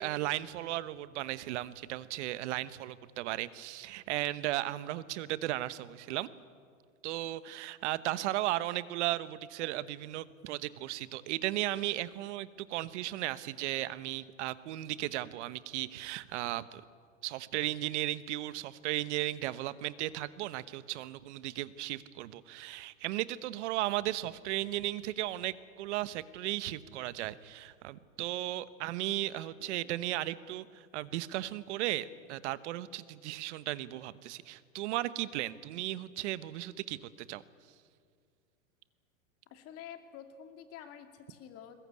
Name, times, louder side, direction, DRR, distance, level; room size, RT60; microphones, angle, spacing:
voice 1, 0.0-6.3 7.0-16.8 17.2-37.4, right 15 dB, 55° right, 16 dB, 1.1 m, -35 dB
voice 2, 39.5-41.7, left 9 dB, 35° left, 7 dB, 2.6 m, -48 dB
21.0 x 20.5 x 9.6 m, 2.1 s
hypercardioid pair, 130°, 42 cm